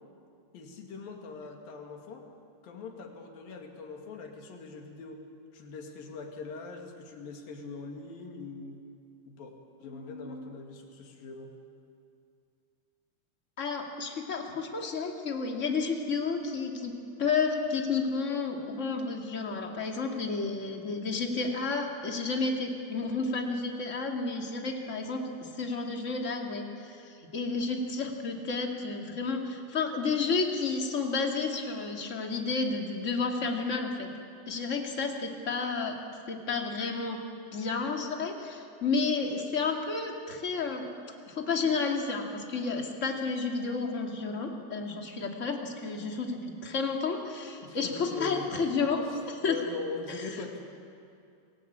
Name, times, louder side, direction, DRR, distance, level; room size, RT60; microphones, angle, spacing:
voice 1, 0.5-2.3 2.6-5.2 5.5-8.8 9.3-11.5 47.6-50.7, left 4 dB, 70° left, 3 dB, 4.1 m, -42 dB
voice 2, 9.8-10.5 13.6-25.3 25.6-34.1 34.5-36.0 36.3-37.2 37.5-40.9 41.3-49.6, left 4 dB, 25° left, 2 dB, 2.0 m, -31 dB
28.5 x 19.0 x 8.7 m, 2.5 s
omnidirectional pair, 4.3 m